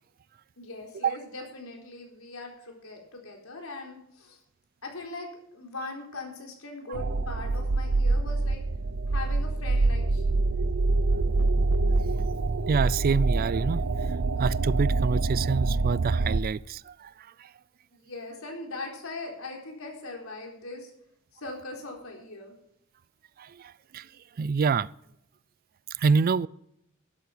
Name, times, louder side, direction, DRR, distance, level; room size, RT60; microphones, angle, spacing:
voice 1, 0.6-4.4 4.8-8.6 9.1-10.4 17.9-20.9 21.3-22.5, left 2 dB, 85° left, 4.1 m, -40 dB
sound 1, 6.9-16.4, right 3 dB, 80° right, 0.7 m, -25 dB
voice 2, 12.7-13.8 14.4-17.1 17.4-17.5 23.4-24.1 24.4-24.9 26.0-26.5, right 5 dB, 45° right, 0.4 m, -26 dB
13.0 x 12.5 x 5.1 m
head